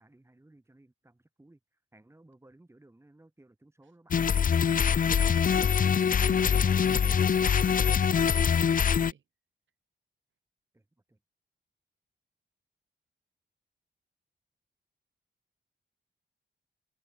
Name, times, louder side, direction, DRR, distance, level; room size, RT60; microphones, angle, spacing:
voice 1, 0.0-1.6 1.9-4.2 10.7-11.2, right 2 dB, 15° right, 6.7 m, -60 dB
sound 1, 4.1-9.1, left 7 dB, 45° left, 0.6 m, -24 dB
voice 2, 6.2-9.2, right 7 dB, 80° right, 7.9 m, -53 dB
wide cardioid pair, 125°, 19 cm